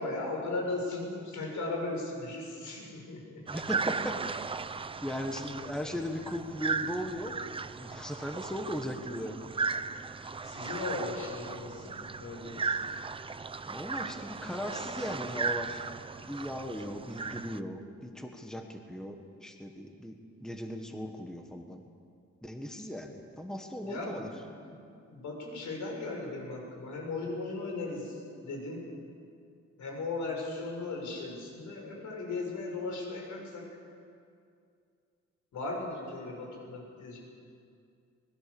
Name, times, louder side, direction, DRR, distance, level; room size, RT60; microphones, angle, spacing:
voice 1, 0.0-3.4 5.9-6.0 10.4-12.8 23.9-24.7 25.1-28.9 29.8-33.7 35.5-37.2, left 3 dB, 80° left, -1 dB, 6.9 m, -37 dB
voice 2, 3.5-4.2 5.0-7.5 7.8-9.5 13.7-15.9 16.2-21.8 22.4-24.3, equal, ahead, 4 dB, 1.4 m, -38 dB
sound 1, 3.5-17.6, right 4 dB, 20° right, 0.5 m, -36 dB
26.0 x 20.5 x 6.9 m, 2.4 s
wide cardioid pair, 170°, 29 cm